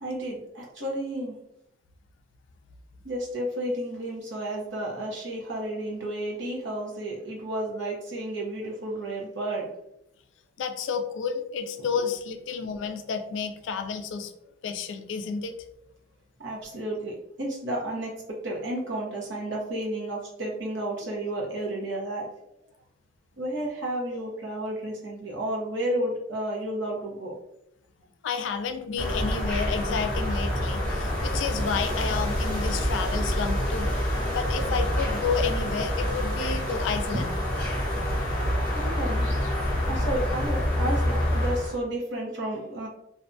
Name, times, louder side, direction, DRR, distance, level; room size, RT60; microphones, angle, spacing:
voice 1, 0.0-1.4 3.0-9.7 16.4-22.3 23.4-27.3 30.8-30.9 38.7-39.5 39.9-42.9, right 1 dB, 65° right, -2 dB, 0.8 m, -32 dB
voice 2, 10.6-14.3 14.6-15.5 28.2-33.9 34.3-37.3, left 5 dB, 75° left, 8 dB, 0.3 m, -31 dB
sound 1, 29.0-41.7, equal, 10° left, 0.8 m, -27 dB
2.5 x 2.2 x 2.6 m, 0.81 s
head